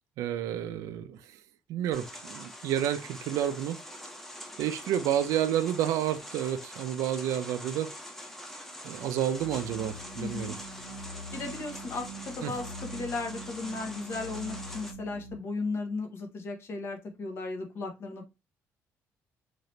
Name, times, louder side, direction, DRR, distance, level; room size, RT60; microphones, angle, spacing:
voice 1, 0.2-1.2 1.7-3.8 4.6-7.9 8.8-10.5 12.4-12.5, right 10 dB, 85° right, 0.4 m, -30 dB
sound 1, 1.9-14.9, equal, 5° left, 0.6 m, -44 dB
sound 2, 9.4-15.3, right 1 dB, 80° left, 1.3 m, -44 dB
voice 2, 10.2-10.5 11.3-18.3, left 3 dB, 50° left, 1.0 m, -36 dB
2.9 x 2.7 x 3.1 m
cardioid pair, 135°, 6 cm